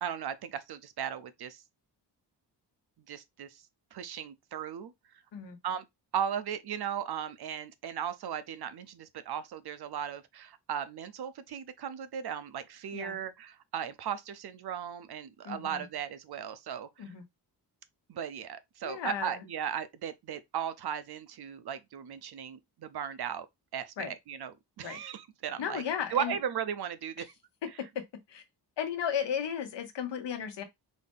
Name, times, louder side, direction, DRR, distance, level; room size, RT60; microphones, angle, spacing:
voice 1, 0.0-1.6 3.1-3.6 3.9-4.9 5.6-5.8 6.1-16.9 18.1-23.5 23.7-25.8 26.1-27.2, right 8 dB, 65° right, 0.6 m, -36 dB
voice 2, 15.4-15.8 17.0-17.2 18.8-19.4 24.0-24.1 24.8-25.0 25.6-26.4 28.3-28.4 28.8-30.6, left 8 dB, 80° left, 1.0 m, -35 dB
4.2 x 2.6 x 3.5 m
wide cardioid pair, 135°, 42 cm